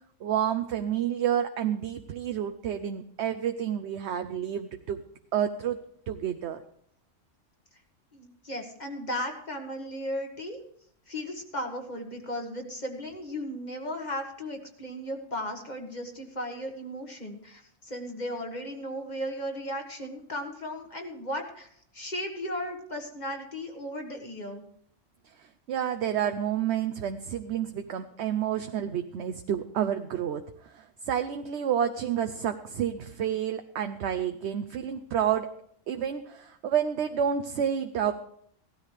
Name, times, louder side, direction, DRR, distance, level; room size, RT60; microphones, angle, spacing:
voice 1, 0.2-5.0 5.3-5.8 6.1-6.6 25.2-35.5 35.9-38.1, right 9 dB, 65° right, 8 dB, 0.9 m, -29 dB
voice 2, 8.1-10.6 11.1-21.7 21.9-24.6, equal, 35° left, 3 dB, 1.7 m, -36 dB
17.0 x 13.0 x 3.3 m, 0.66 s
omnidirectional pair, 1.3 m